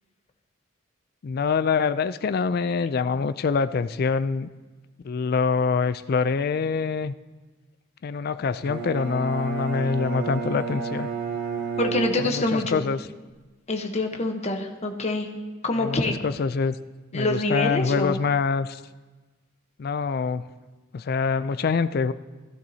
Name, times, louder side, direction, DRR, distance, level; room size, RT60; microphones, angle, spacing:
voice 1, 1.2-4.5 5.0-7.1 8.0-11.1 12.2-13.0 15.7-16.8 17.1-18.8 19.8-20.5 20.9-22.1, left 5 dB, 50° left, 13 dB, 0.3 m, -25 dB
Bowed string instrument, 8.6-12.8, right 5 dB, 80° right, 2.7 m, -31 dB
voice 2, 11.8-12.8 13.7-15.3 15.6-16.2 17.1-18.2, left 2 dB, 35° left, 4 dB, 0.9 m, -26 dB
16.5 x 12.0 x 2.8 m, 1.3 s
head